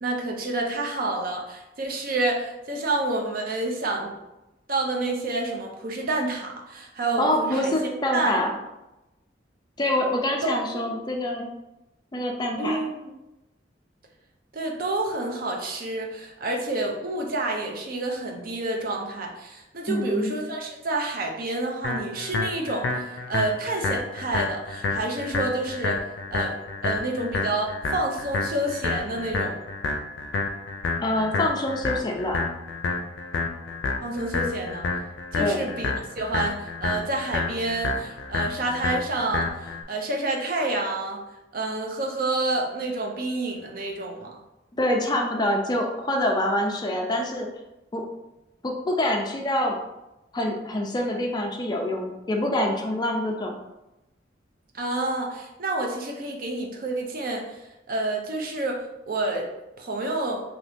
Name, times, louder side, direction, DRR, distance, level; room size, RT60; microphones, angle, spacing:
voice 1, 0.0-4.2 4.7-8.4 10.4-10.6 12.6-13.1 14.5-26.0 26.3-26.6 26.8-29.6 34.0-34.9 35.3-35.9 36.2-41.2 41.5-44.3 54.7-57.5 57.9-59.5 59.8-60.4, right 2 dB, 50° right, 1 dB, 0.6 m, -29 dB
voice 2, 7.2-8.5 9.8-11.5 12.1-12.8 19.9-20.4 31.0-32.4 35.4-35.7 44.8-47.5 47.9-48.0 48.6-49.8 50.3-53.6, left 1 dB, 25° left, 1 dB, 0.4 m, -25 dB
sound 1, 21.8-39.8, left 3 dB, 85° left, 0.4 m, -29 dB
2.8 x 2.7 x 3.4 m, 0.95 s
head